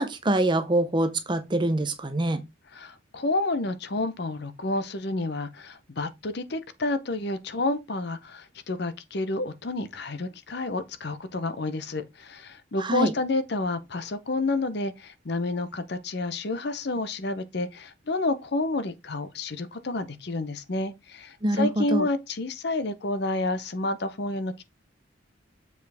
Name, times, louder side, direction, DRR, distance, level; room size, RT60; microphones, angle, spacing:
voice 1, 0.0-2.4 12.8-13.1 21.4-22.1, right 1 dB, 25° right, 0.6 m, -25 dB
voice 2, 2.7-24.6, left 2 dB, 55° left, 0.7 m, -30 dB
7.0 x 4.8 x 3.4 m
head